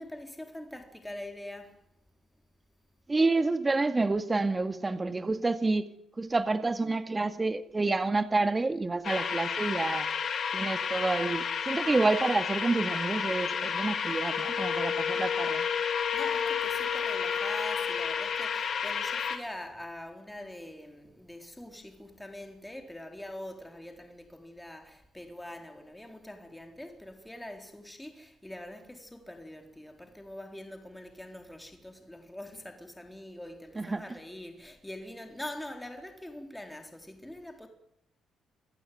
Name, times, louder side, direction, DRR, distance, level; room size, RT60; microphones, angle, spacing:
voice 1, 0.0-1.9 16.1-37.7, left 1 dB, 5° left, 4.1 m, -44 dB
voice 2, 3.1-5.9 6.2-10.1 10.5-15.7 33.8-34.0, right 3 dB, 25° right, 2.1 m, -28 dB
sound 1, 9.0-19.4, left 6 dB, 55° left, 3.4 m, -32 dB
Wind instrument woodwind instrument, 14.3-18.7, left 8 dB, 75° left, 1.5 m, -34 dB
26.5 x 15.5 x 9.4 m
cardioid pair, 90°, 0 cm